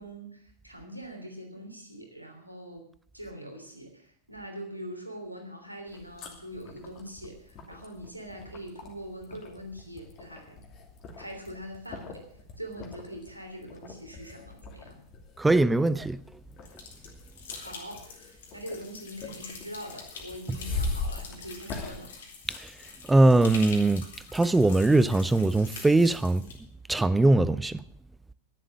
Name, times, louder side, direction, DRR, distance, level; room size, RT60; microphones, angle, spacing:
voice 1, 0.0-2.9 3.1-10.6 11.2-12.3 12.6-15.0 17.6-22.1, equal, 90° right, 3.2 m, -43 dB
sound 1, 5.9-23.1, left 3 dB, 35° left, 2.7 m, -41 dB
voice 2, 15.4-16.2 23.1-24.0 24.3-26.4 26.9-27.8, right 2 dB, 10° right, 0.5 m, -21 dB
sound 2, 16.7-26.6, left 5 dB, 60° left, 2.9 m, -45 dB
12.0 x 11.0 x 7.5 m
figure-of-eight pair, 90°, 0 cm